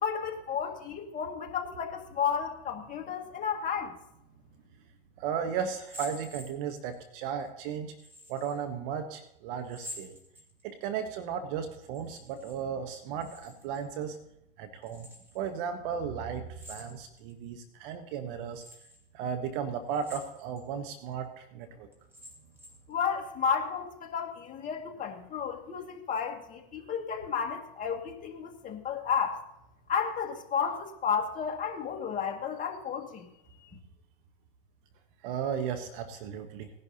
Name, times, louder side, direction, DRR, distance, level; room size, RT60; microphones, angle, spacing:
voice 1, 0.0-4.0 22.9-29.4 29.9-33.3, left 7 dB, 25° left, 2 dB, 1.8 m, -32 dB
voice 2, 5.2-7.9 8.3-10.1 10.6-14.2 14.6-15.1 15.3-18.6 19.1-21.9 35.2-36.7, right 7 dB, 60° right, 8 dB, 1.1 m, -35 dB
sound 1, 5.7-7.0 8.0-8.6 9.6-10.8 11.8-12.6 12.8-13.8 14.8-15.4 16.5-17.3 17.9-18.0 18.5-19.0 19.9-20.6 21.1-21.2 21.9-22.9, left 1 dB, 5° right, 3.2 m, -48 dB
18.5 x 10.5 x 2.8 m, 0.83 s
hypercardioid pair, 115°, 30 cm